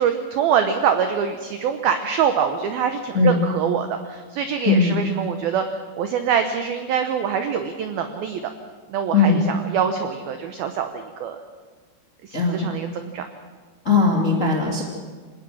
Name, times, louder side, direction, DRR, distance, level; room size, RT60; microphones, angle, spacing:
voice 1, 0.0-5.6 6.0-8.4 8.9-11.4 12.2-13.3, right 7 dB, 75° right, 7 dB, 2.2 m, -24 dB
voice 2, 4.6-5.0 9.1-9.4 12.3-12.6 13.8-14.8, left 4 dB, 30° left, -1 dB, 1.5 m, -18 dB
26.5 x 19.0 x 6.3 m, 1.5 s
omnidirectional pair, 5.7 m